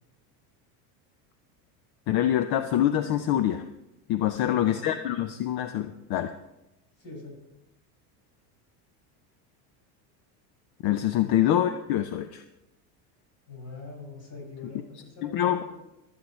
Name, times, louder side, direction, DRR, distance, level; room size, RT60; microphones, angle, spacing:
voice 1, 2.1-3.6 4.1-6.3 10.8-12.4 15.2-15.7, left 11 dB, 50° left, 9 dB, 0.7 m, -25 dB
voice 2, 4.3-4.8 7.0-7.4 11.2-11.4 13.5-15.7, left 4 dB, 30° left, -3 dB, 6.2 m, -43 dB
25.5 x 8.9 x 3.1 m, 0.93 s
supercardioid pair, 110°, 47 cm